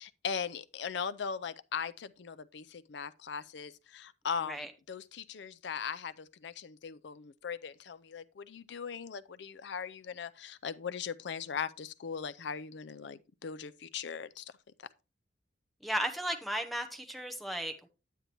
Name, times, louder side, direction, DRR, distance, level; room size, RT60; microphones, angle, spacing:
voice 1, 0.0-14.4, left 6 dB, 65° left, 0.4 m, -39 dB
voice 2, 15.8-17.9, equal, ahead, 0.7 m, -35 dB
9.1 x 8.4 x 2.9 m
head